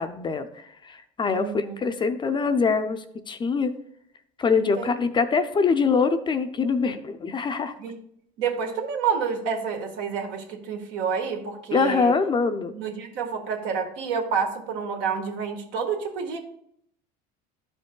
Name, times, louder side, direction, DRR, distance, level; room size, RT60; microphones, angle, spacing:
voice 1, 0.0-3.7 4.4-7.7 11.7-12.7, left 5 dB, 25° left, 8 dB, 0.5 m, -24 dB
voice 2, 1.3-1.8 4.5-5.0 7.8-7.9 8.4-12.1 12.7-16.4, right 6 dB, 70° right, 4 dB, 1.3 m, -29 dB
11.5 x 5.2 x 2.2 m, 0.71 s
supercardioid pair, 115°, 19 cm